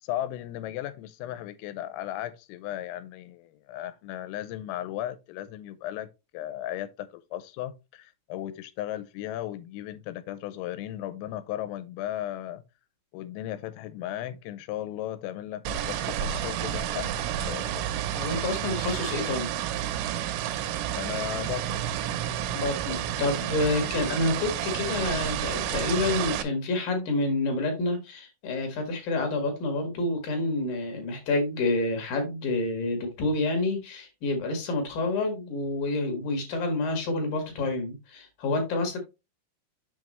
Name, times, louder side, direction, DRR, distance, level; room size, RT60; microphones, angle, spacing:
voice 1, 0.0-6.1 6.3-12.6 13.1-17.8 21.0-21.8, left 13 dB, 85° left, 3.2 m, -36 dB
sound 1, 15.7-26.4, right 10 dB, 80° right, 3.4 m, -30 dB
voice 2, 18.1-19.5 22.5-39.0, left 2 dB, 60° left, 2.6 m, -28 dB
7.4 x 5.9 x 3.0 m
omnidirectional pair, 6.0 m